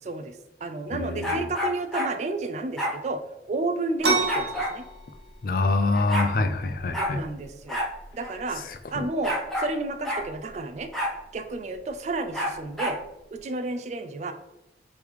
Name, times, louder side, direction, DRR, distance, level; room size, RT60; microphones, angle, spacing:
voice 1, 0.0-3.2 3.5-4.8 6.9-7.8 8.1-8.6 8.9-10.9 11.3-13.0 13.3-14.3, right 2 dB, 40° right, 8 dB, 0.3 m, -31 dB
voice 2, 0.9-1.4 5.4-7.2 8.7-9.1, left 3 dB, 50° left, 7 dB, 0.4 m, -26 dB
sound 1, 1.2-2.1 2.8-3.0 4.3-4.8 5.6-5.7 5.9-6.3 6.9-7.1 7.7-7.9 8.2-8.3 9.2-9.7 10.0-10.3 10.9-11.2 12.3-13.0, equal, ahead, 0.7 m, -28 dB
sound 2, 4.0-13.4, right 3 dB, 70° right, 1.0 m, -35 dB
5.1 x 3.2 x 3.2 m, 0.89 s
head